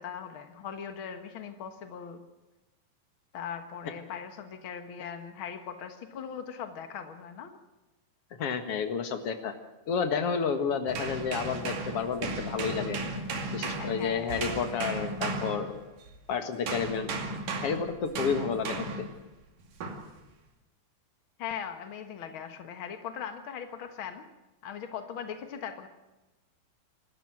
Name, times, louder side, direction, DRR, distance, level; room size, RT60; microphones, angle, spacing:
voice 1, 0.0-2.2 3.3-7.5 13.7-14.5 21.4-24.2 24.6-25.9, left 7 dB, 75° left, 7 dB, 1.2 m, -40 dB
voice 2, 8.4-9.5 9.9-13.0 13.5-15.8 16.3-17.1 17.6-19.1, left 6 dB, 50° left, 8 dB, 1.8 m, -30 dB
sound 1, 10.9-16.2 16.7-19.2 19.8-20.1, right 3 dB, 55° right, 3.7 m, -35 dB
26.0 x 13.0 x 7.7 m, 1.1 s
omnidirectional pair, 4.7 m